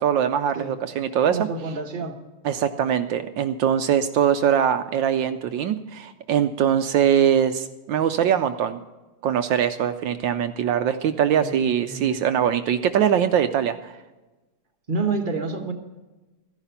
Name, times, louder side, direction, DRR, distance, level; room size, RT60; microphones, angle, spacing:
voice 1, 0.0-1.5 2.4-8.8 9.2-14.0, right 9 dB, 75° right, 10 dB, 1.2 m, -22 dB
voice 2, 1.3-2.1 11.3-12.2 14.9-15.7, right 4 dB, 35° right, 4 dB, 0.9 m, -29 dB
14.5 x 10.5 x 5.7 m, 1.1 s
omnidirectional pair, 2.4 m